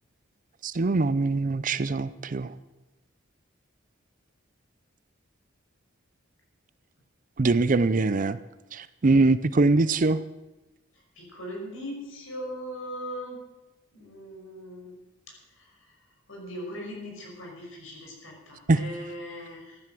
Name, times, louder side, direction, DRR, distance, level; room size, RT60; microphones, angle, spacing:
voice 1, 0.6-2.6 7.4-8.4 8.7-10.2 18.7-18.8, right 3 dB, 40° right, 15 dB, 0.5 m, -23 dB
voice 2, 11.2-13.4 13.9-14.9 15.3-16.0 16.3-19.8, equal, 70° left, -1 dB, 5.6 m, -39 dB
14.0 x 11.0 x 7.6 m, 1.1 s
head